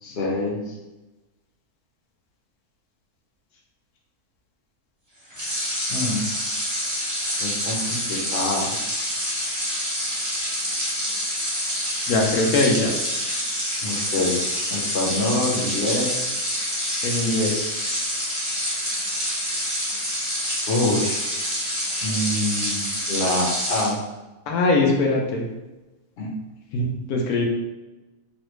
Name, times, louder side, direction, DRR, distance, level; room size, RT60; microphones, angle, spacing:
voice 1, 0.0-0.7 5.9-6.2 7.4-8.7 13.8-14.4 14.7-16.2 20.7-21.4 22.0-24.0 26.2-26.3, left 1 dB, 50° left, -3 dB, 0.9 m, -26 dB
sound 1, 5.3-23.9, equal, 20° right, 0.6 m, -27 dB
voice 2, 12.1-13.0 17.0-17.7 24.5-25.4 26.7-27.5, left 2 dB, 80° left, 0 dB, 1.1 m, -21 dB
3.2 x 2.4 x 3.0 m, 1.1 s
omnidirectional pair, 1.5 m